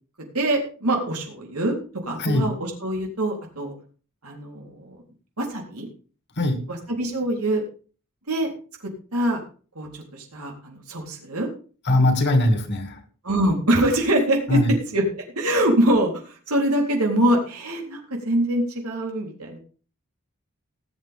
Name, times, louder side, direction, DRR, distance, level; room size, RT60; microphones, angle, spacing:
voice 1, 0.3-1.8 2.0-3.7 4.2-5.0 5.4-5.9 6.7-7.6 8.3-8.5 9.1-9.4 9.8-11.5 13.2-19.6, right 1 dB, 85° right, 3.8 m, -24 dB
voice 2, 11.9-12.9 14.5-14.7, left 1 dB, 50° left, 2.4 m, -20 dB
19.5 x 8.5 x 3.6 m
head